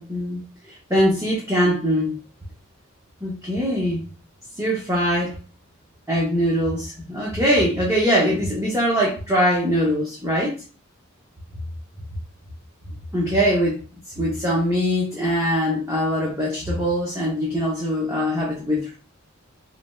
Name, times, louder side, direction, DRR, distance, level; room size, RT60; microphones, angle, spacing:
voice 1, 0.0-2.2 3.2-4.0 4.6-5.4 6.1-10.5 13.1-13.8 14.2-19.0, equal, 15° right, -5 dB, 0.6 m, -22 dB
3.9 x 2.0 x 2.2 m, 0.36 s
head